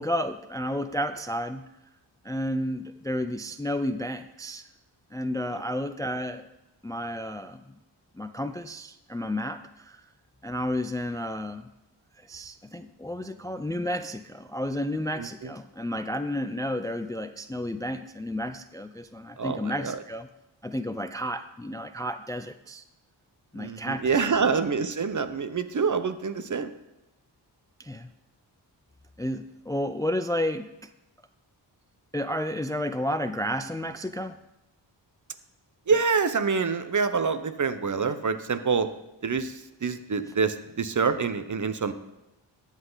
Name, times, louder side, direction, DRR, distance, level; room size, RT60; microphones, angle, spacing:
voice 1, 0.0-1.6 2.2-4.7 5.1-6.4 6.8-7.6 8.2-10.0 10.4-11.7 12.2-20.3 20.6-22.8 23.5-24.5 27.8-28.1 29.2-30.9 32.1-34.4, equal, 10° left, 11 dB, 0.4 m, -31 dB
voice 2, 15.2-15.5 19.4-20.0 23.6-26.7 35.9-38.9 39.2-41.9, right 5 dB, 40° right, 11 dB, 0.8 m, -26 dB
13.0 x 8.3 x 4.0 m, 0.95 s
cardioid pair, 60°, 45 cm